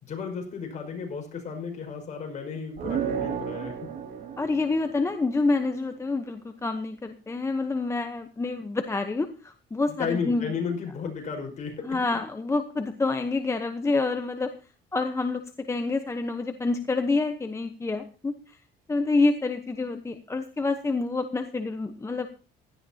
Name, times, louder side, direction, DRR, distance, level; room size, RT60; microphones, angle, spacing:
voice 1, 0.0-3.9 10.0-12.0, left 6 dB, 45° left, 3 dB, 5.3 m, -33 dB
sound 1, 2.8-5.5, right 7 dB, 65° right, 2.5 m, -33 dB
voice 2, 4.4-10.5 11.9-14.5 14.9-18.4 18.9-22.3, left 3 dB, 15° left, 7 dB, 0.9 m, -27 dB
16.5 x 13.0 x 2.9 m, 0.36 s
cardioid pair, 110°, 17 cm